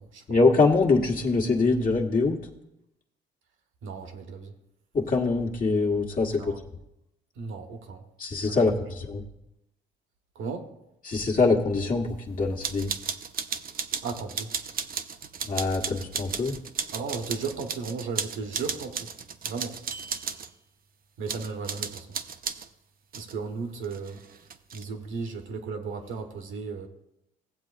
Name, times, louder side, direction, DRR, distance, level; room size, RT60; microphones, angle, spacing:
voice 1, 0.3-2.4 4.9-6.5 8.2-9.2 11.0-12.9 15.5-16.6, left 3 dB, 45° left, 1.4 m, -24 dB
voice 2, 3.8-4.5 6.4-6.6 7.4-8.0 8.5-8.8 10.3-10.7 14.0-14.5 16.9-19.1 19.4-19.8 21.2-22.2 23.1-24.2 24.7-26.9, right 5 dB, 80° right, 1.3 m, -35 dB
sound 1, 12.6-20.5 21.3-22.7 23.1-23.3 23.8-24.8, right 6 dB, 45° right, 0.6 m, -35 dB
16.5 x 7.7 x 2.5 m
cardioid pair, 90°, 20 cm